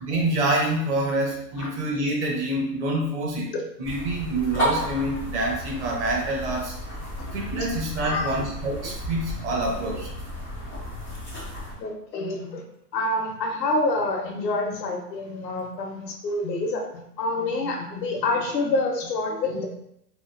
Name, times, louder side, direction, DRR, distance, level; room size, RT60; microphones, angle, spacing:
voice 1, 0.0-6.7 7.3-10.1, right 1 dB, 45° right, -1 dB, 0.8 m, -26 dB
sound 1, 3.8-11.7, equal, 15° right, 0.4 m, -33 dB
voice 2, 8.0-8.4 11.8-12.6 12.9-19.7, left 2 dB, 75° left, 2 dB, 0.9 m, -27 dB
2.9 x 2.4 x 2.4 m, 0.76 s
hypercardioid pair, 145°, 50 cm